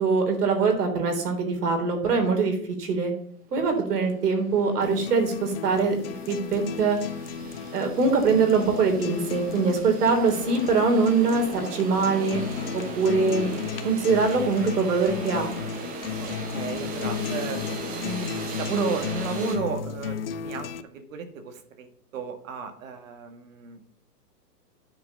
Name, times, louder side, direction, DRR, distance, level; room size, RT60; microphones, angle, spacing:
voice 1, 0.0-3.1 3.5-7.0 7.7-12.4 12.7-13.5 13.8-15.5, right 4 dB, 70° right, 4 dB, 3.4 m, -23 dB
sound 1, 3.6-3.7 4.0-19.6, right 4 dB, 15° right, 1.2 m, -39 dB
sound 2, 4.8-20.8, left 8 dB, 40° left, 0.5 m, -34 dB
voice 2, 16.2-21.9 22.1-23.8, right 4 dB, 50° right, 7 dB, 1.7 m, -33 dB
9.6 x 4.9 x 7.3 m, 0.63 s
hypercardioid pair, 140°, 49 cm